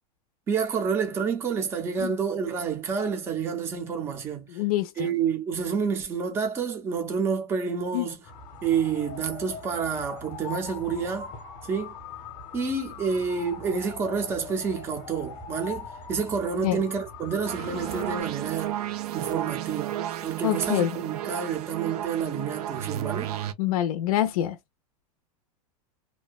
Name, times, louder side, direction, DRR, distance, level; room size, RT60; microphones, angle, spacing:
voice 1, 0.5-4.5 5.0-8.2 8.6-11.3 11.6-11.9 12.5-18.8 19.1-19.9 20.2-23.3, right 6 dB, 15° right, 0.4 m, -29 dB
voice 2, 4.5-5.1 7.9-8.1 16.6-16.8 20.4-20.9 23.6-24.6, left 13 dB, 75° left, 0.5 m, -25 dB
sound 1, 8.2-18.2, left 5 dB, 25° left, 0.7 m, -41 dB
sound 2, 17.5-23.5, right 11 dB, 90° right, 0.5 m, -33 dB
2.6 x 2.1 x 2.3 m
supercardioid pair, 175°, 19 cm